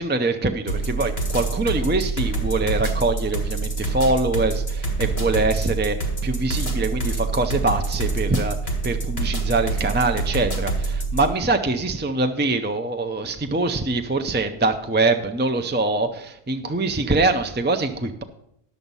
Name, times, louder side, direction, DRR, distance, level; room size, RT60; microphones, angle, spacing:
voice 1, 0.0-6.0 6.2-8.6 8.8-18.2, right 3 dB, 20° right, 6 dB, 0.3 m, -23 dB
sound 1, 0.7-11.3, right 3 dB, 80° left, 2.1 m, -26 dB
10.5 x 7.0 x 5.4 m, 0.75 s
omnidirectional pair, 1.0 m